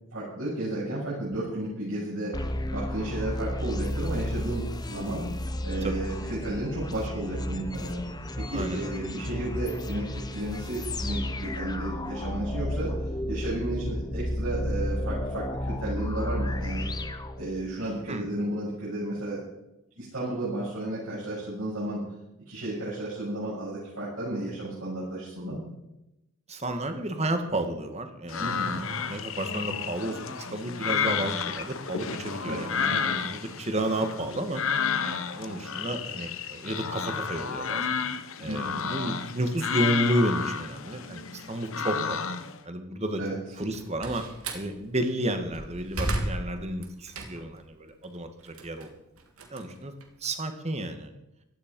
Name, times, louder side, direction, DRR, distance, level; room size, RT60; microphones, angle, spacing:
voice 1, 0.1-5.3 5.6-8.0 8.3-16.9 17.4-19.4 20.0-22.1 22.5-25.6 28.4-28.8 32.4-33.3 38.4-38.9 43.2-43.3, right 1 dB, 65° right, -8 dB, 7.1 m, -33 dB
sound 1, 2.3-17.9, left 1 dB, 20° left, 0.9 m, -32 dB
voice 2, 8.5-8.9 18.1-18.3 26.5-32.8 33.1-37.9 38.4-42.3 42.6-43.2 43.6-44.2 44.5-48.9 49.5-49.9 50.2-51.1, right 1 dB, 30° right, 7 dB, 1.8 m, -31 dB
sound 2, 28.3-42.6, left 6 dB, 65° left, 1.1 m, -31 dB
Slam, 43.6-44.7 45.3-47.6 48.0-50.4, right 1 dB, 80° right, 2.7 m, -34 dB
16.5 x 13.0 x 5.4 m, 0.89 s
head